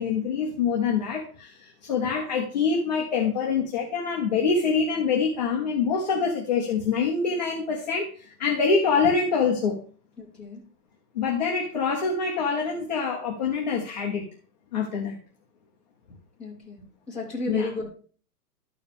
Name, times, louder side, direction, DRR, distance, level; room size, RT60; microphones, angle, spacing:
voice 1, 0.0-9.8 11.1-14.2 14.7-15.2 17.5-17.7, left 5 dB, 25° left, -1 dB, 0.8 m, -25 dB
voice 2, 10.2-10.6 16.4-17.9, left 2 dB, ahead, -11 dB, 2.2 m, -34 dB
12.5 x 4.7 x 3.5 m, 0.43 s
hypercardioid pair, 180°, 48 cm